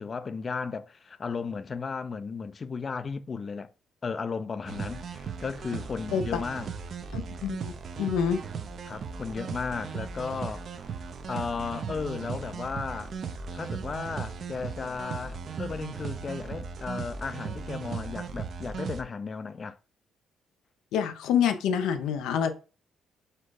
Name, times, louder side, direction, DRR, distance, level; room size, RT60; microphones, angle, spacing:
voice 1, 0.0-3.7 4.0-6.7 8.9-10.8 11.3-13.1 13.5-19.8, left 5 dB, 40° left, 0.4 m, -35 dB
sound 1, 4.7-19.0, right 6 dB, 55° right, 0.6 m, -37 dB
voice 2, 7.1-7.7 8.0-8.4 20.9-22.5, left 8 dB, 90° left, 0.6 m, -27 dB
4.4 x 2.4 x 4.7 m
cardioid pair, 90°, 0 cm